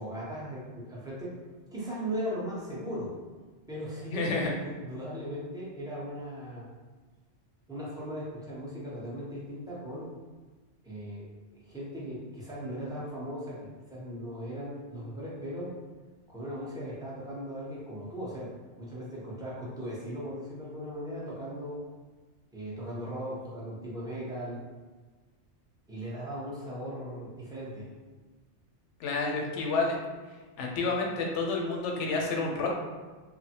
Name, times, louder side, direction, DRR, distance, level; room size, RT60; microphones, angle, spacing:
voice 1, 0.0-1.4 1.7-3.1 3.7-6.7 7.7-10.1 10.8-11.2 11.5-15.7 16.3-18.5 18.8-21.8 22.5-24.6 25.9-27.9, equal, 5° right, -7 dB, 0.5 m, -38 dB
voice 2, 4.1-4.5 29.0-30.0 30.6-32.7, left 3 dB, 85° left, 0 dB, 0.9 m, -29 dB
3.3 x 2.1 x 2.8 m, 1.3 s
omnidirectional pair, 1.2 m